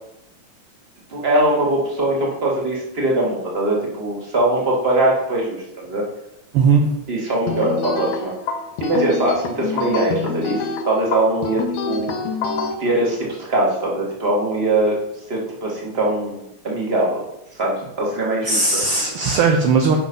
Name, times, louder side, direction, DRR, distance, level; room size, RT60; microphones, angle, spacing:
voice 1, 1.1-6.0 7.1-8.3 8.8-10.6 10.8-12.1 12.8-15.0 15.3-17.2 17.6-18.6, right 1 dB, 20° right, -3 dB, 2.1 m, -21 dB
voice 2, 6.5-6.9 18.4-20.0, right 4 dB, 65° right, 2 dB, 1.5 m, -17 dB
sound 1, 7.5-12.7, left 5 dB, 85° left, 2.4 m, -26 dB
9.8 x 5.9 x 5.5 m, 0.83 s
omnidirectional pair, 3.3 m